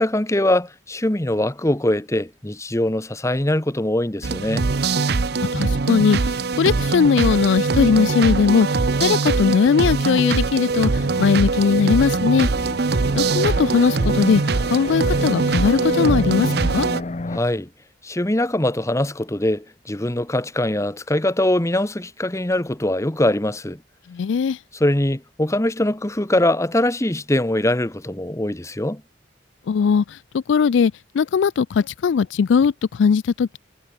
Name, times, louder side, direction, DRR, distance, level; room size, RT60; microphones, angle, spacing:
voice 1, 0.0-4.7 17.3-17.7 18.0-23.8 24.7-29.0, left 1 dB, 15° left, 1.1 m, -22 dB
sound 1, 4.2-17.0, right 3 dB, 60° right, 0.7 m, -22 dB
voice 2, 5.3-8.7 9.0-12.5 13.1-14.4 14.7-16.9 24.1-24.6 29.7-33.6, left 6 dB, 80° left, 0.4 m, -19 dB
sound 2, 10.7-17.4, left 2 dB, 35° left, 0.7 m, -33 dB
head